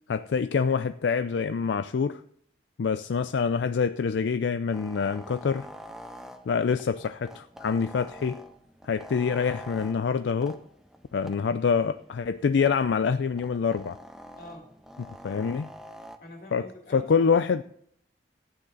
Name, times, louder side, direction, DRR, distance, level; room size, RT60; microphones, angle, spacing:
voice 1, 0.1-2.2 2.8-5.7 6.5-8.4 8.8-10.6 11.1-14.0 15.0-15.7 16.5-16.7 16.9-17.6, left 6 dB, 80° left, 12 dB, 0.4 m, -26 dB
sound 1, 4.7-16.2, equal, 5° right, 0.7 m, -47 dB
voice 2, 14.4-14.7 16.2-17.4, left 1 dB, 55° left, 1 dB, 3.0 m, -45 dB
15.0 x 9.3 x 3.9 m, 0.67 s
head